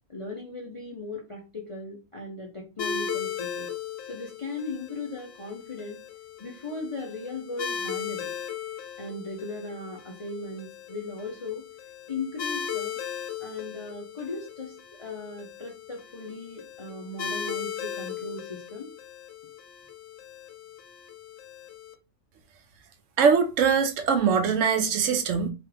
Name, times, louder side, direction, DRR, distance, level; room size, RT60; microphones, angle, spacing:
voice 1, 0.1-3.7 4.0-6.0 6.4-8.3 9.0-11.7 12.1-13.0 13.4-18.9, left 3 dB, 45° left, 0.4 m, -37 dB
sound 1, 2.8-21.9, left 7 dB, 75° left, 1.0 m, -37 dB
voice 2, 23.2-25.5, right 6 dB, 70° right, 0.9 m, -22 dB
2.9 x 2.4 x 3.2 m
omnidirectional pair, 1.4 m